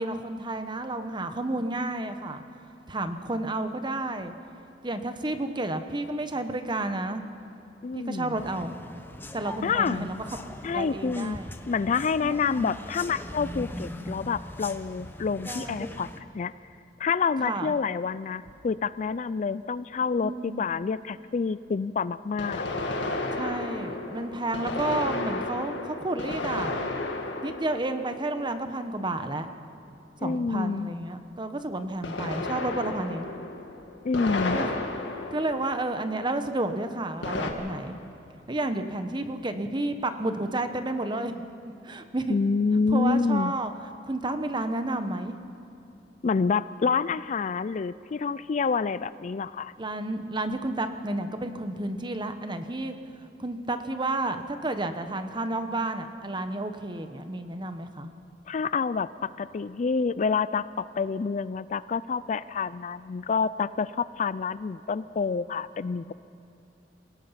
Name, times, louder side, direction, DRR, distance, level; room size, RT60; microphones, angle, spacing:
voice 1, 0.0-2.4 2.9-4.3 4.8-7.2 7.9-9.0 9.3-10.1 10.7-11.5 12.2-12.8 15.5-15.9 17.4-17.7 20.2-20.6 23.3-26.8 27.4-29.5 30.2-33.2 34.5-34.8 35.3-37.9 38.5-41.3 41.8-42.4 42.9-43.7 44.0-45.4 49.8-53.0 53.4-58.1, right 2 dB, 25° right, 8 dB, 1.1 m, -31 dB
voice 2, 7.8-8.4 9.6-10.1 10.6-11.4 11.7-16.5 17.0-22.6 30.2-30.9 34.0-34.6 42.3-43.5 46.2-49.7 58.5-66.1, left 5 dB, 40° left, 16 dB, 0.4 m, -28 dB
sound 1, 8.4-16.2, left 1 dB, 10° left, 1.0 m, -41 dB
sound 2, 18.5-18.6 22.4-28.9 32.0-36.3 37.2-37.5, left 2 dB, 85° left, 1.9 m, -33 dB
27.5 x 17.5 x 5.8 m, 2.9 s
head